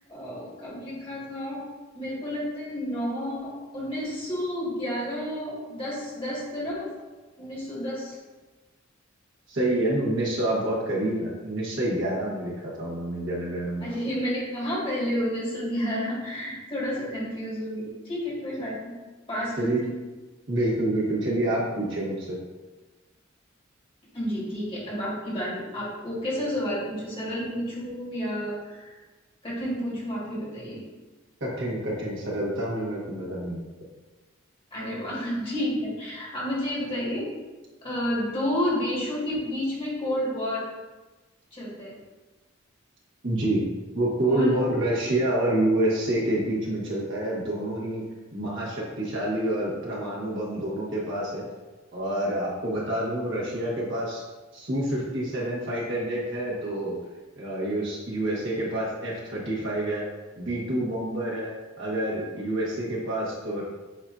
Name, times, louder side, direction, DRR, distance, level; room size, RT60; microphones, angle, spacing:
voice 1, 0.1-1.6 1.9-6.9 7.4-8.2 13.8-18.9 19.3-19.9 24.1-29.0 29.4-30.8 34.7-37.3 37.8-40.6 41.5-42.0 44.3-44.5 44.9-45.1, equal, 25° left, -6 dB, 1.4 m, -30 dB
voice 2, 9.5-13.9 19.6-19.8 20.5-22.4 31.4-33.6 43.2-43.6 43.9-48.0 48.3-51.4 51.9-54.2 54.5-57.0 57.3-60.0 60.4-63.6, right 1 dB, 65° right, -5 dB, 1.3 m, -27 dB
7.8 x 2.6 x 2.5 m, 1.2 s
head